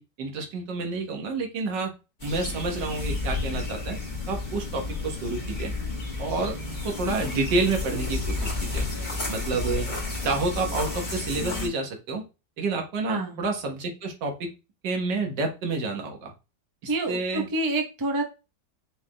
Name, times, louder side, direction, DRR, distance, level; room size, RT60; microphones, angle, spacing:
voice 1, 0.0-1.9 2.2-4.0 4.3-5.7 6.2-6.6 6.8-8.9 9.3-9.9 10.2-12.2 12.6-14.5 14.8-16.3 16.8-17.5, right 3 dB, 75° right, 3 dB, 1.8 m, -29 dB
sound 1, 2.2-11.7, left 3 dB, 25° left, 1.8 m, -31 dB
voice 2, 13.1-13.4 16.9-18.2, right 2 dB, 30° right, 3 dB, 0.4 m, -27 dB
6.3 x 3.3 x 2.2 m, 0.28 s
omnidirectional pair, 1.9 m